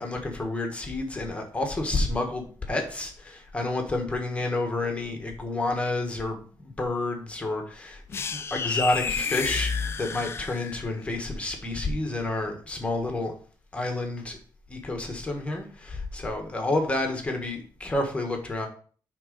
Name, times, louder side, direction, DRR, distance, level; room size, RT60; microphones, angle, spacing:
voice 1, 0.0-13.3 13.7-14.4 14.7-18.7, left 2 dB, 15° left, 3 dB, 1.4 m, -30 dB
sound 1, 8.1-11.0, left 5 dB, 35° left, 0.4 m, -30 dB
9.1 x 3.7 x 5.2 m, 0.43 s
wide cardioid pair, 160°, 8 cm